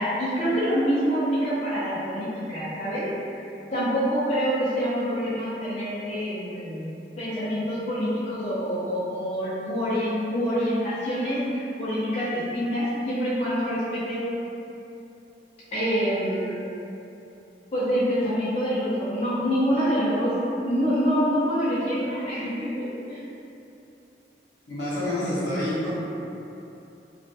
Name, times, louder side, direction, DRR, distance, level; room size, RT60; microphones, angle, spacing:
voice 1, 0.0-3.1 3.7-14.2 15.7-16.6 17.7-20.3 20.6-23.2, equal, 35° left, -12 dB, 0.5 m, -26 dB
voice 2, 24.7-25.9, left 1 dB, 85° left, -10 dB, 0.9 m, -27 dB
2.4 x 2.2 x 2.6 m, 2.9 s
head